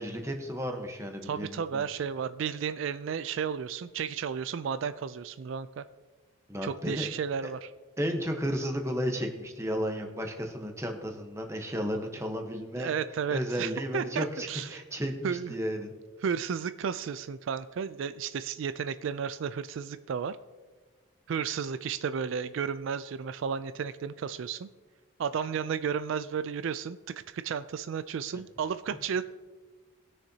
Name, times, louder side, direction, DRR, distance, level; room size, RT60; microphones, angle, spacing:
voice 1, 0.0-1.8 6.5-7.1 7.4-7.5 8.0-12.9 13.3-15.9, equal, 15° right, 3 dB, 1.0 m, -33 dB
voice 2, 1.2-5.9 6.6-7.7 12.8-14.8 15.2-15.5 16.2-20.4 21.3-24.7 25.2-29.2, right 7 dB, 70° right, 13 dB, 0.3 m, -33 dB
20.0 x 6.6 x 2.8 m, 1.3 s
head